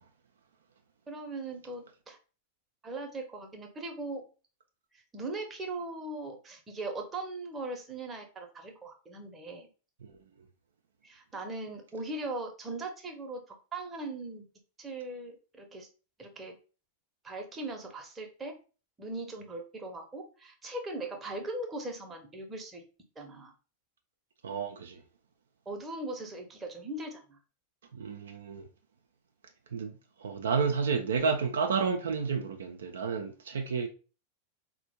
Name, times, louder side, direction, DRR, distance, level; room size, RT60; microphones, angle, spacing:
voice 1, 1.1-2.2 2.8-4.2 5.1-9.7 11.0-14.4 14.8-15.9 16.2-16.6 17.2-18.6 19.0-22.8 23.2-23.5 25.7-27.4, right 2 dB, 15° right, 0.7 m, -39 dB
voice 2, 24.4-25.0 27.9-28.6 29.7-29.9 30.2-33.9, right 5 dB, 65° right, 0.4 m, -30 dB
4.1 x 2.2 x 2.7 m
figure-of-eight pair, 90°, 0 cm